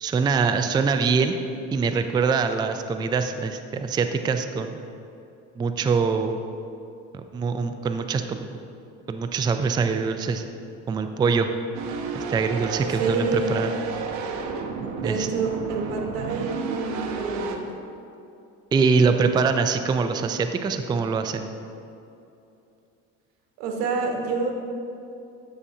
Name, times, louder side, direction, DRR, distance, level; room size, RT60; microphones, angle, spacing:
voice 1, 0.0-1.4 1.7-4.8 5.6-6.4 7.1-8.5 9.1-10.4 10.9-11.5 12.1-13.7 15.0-15.3 18.7-21.5, right 5 dB, 15° right, 8 dB, 0.3 m, -24 dB
sound 1, 11.7-17.6, right 5 dB, 65° right, 0.9 m, -31 dB
voice 2, 13.0-13.5 15.0-17.7 23.6-24.5, right 4 dB, 85° right, 1 dB, 1.2 m, -28 dB
9.8 x 6.8 x 2.7 m, 2.7 s
supercardioid pair, 100°, 32 cm